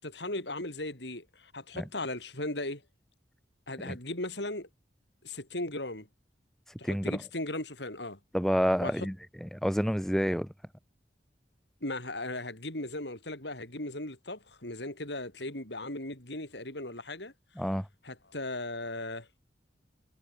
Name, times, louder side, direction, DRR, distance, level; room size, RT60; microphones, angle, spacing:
voice 1, 0.0-2.8 3.7-4.7 5.2-6.1 6.8-8.2 8.8-9.1 11.8-17.3 18.0-19.3, left 2 dB, 70° left, 7.5 m, -37 dB
voice 2, 6.8-7.2 8.3-9.1 9.4-10.5 17.6-17.9, equal, ahead, 3.5 m, -28 dB
head